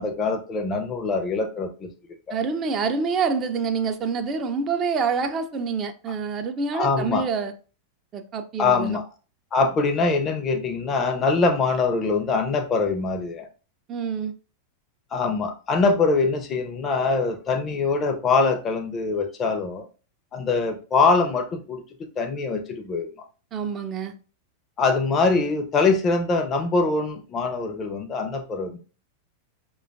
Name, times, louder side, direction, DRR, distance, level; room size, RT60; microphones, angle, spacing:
voice 1, 0.0-1.9 2.3-2.4 6.7-7.3 8.6-9.0 9.5-13.5 15.1-19.8 20.3-21.8 22.2-23.1 24.8-28.8, left 4 dB, 25° left, 0.5 m, -23 dB
voice 2, 2.3-7.5 8.1-9.0 13.9-14.3 23.5-24.1, right 5 dB, 30° right, 0.4 m, -26 dB
4.8 x 2.3 x 2.4 m
figure-of-eight pair, 90°, 0 cm